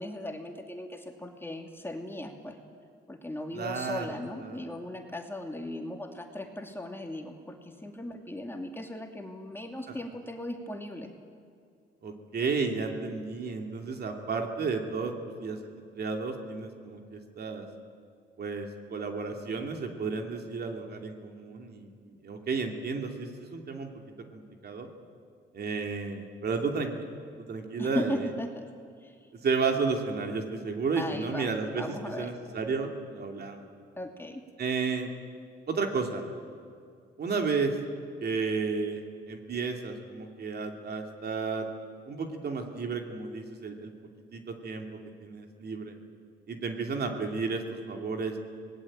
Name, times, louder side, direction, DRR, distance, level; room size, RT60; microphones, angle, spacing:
voice 1, 0.0-2.6 3.1-11.1 27.8-28.7 29.0-29.2 31.0-32.3 34.0-34.4, left 1 dB, 10° left, 3 dB, 2.5 m, -37 dB
voice 2, 3.5-4.6 12.0-15.6 15.9-17.7 18.4-24.0 24.3-24.9 25.5-27.1 27.5-28.2 29.4-31.8 32.2-33.6 34.6-35.1 35.7-36.3 37.2-37.8 38.2-41.7 42.1-43.9 44.3-45.9 46.5-48.4, right 4 dB, 55° right, 3 dB, 2.9 m, -32 dB
25.5 x 19.0 x 8.8 m, 2.3 s
cardioid pair, 90°, 20 cm